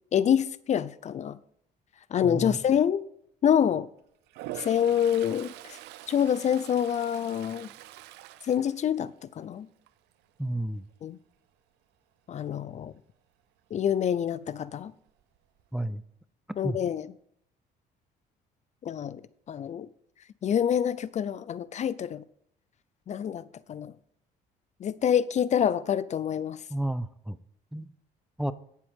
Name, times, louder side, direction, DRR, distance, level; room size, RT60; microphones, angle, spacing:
voice 1, 0.1-1.4 2.1-3.0 3.4-3.9 4.6-5.8 6.1-7.7 8.5-9.7 11.0-11.2 12.3-12.9 13.7-14.9 16.6-17.1 18.8-19.2 19.5-19.9 20.4-22.2 23.1-23.9 24.8-26.6, left 9 dB, 45° left, 0.6 m, -26 dB
voice 2, 2.2-2.6 10.4-10.8 15.7-16.0 16.6-16.8 26.7-27.4 27.7-27.9 28.4-28.5, right 1 dB, 5° right, 0.5 m, -31 dB
Toilet flush, 4.3-9.5 9.9-10.2 14.7-14.8 15.1-15.8, right 14 dB, 85° right, 0.7 m, -44 dB
17.0 x 7.6 x 3.6 m
cardioid pair, 110°, 17 cm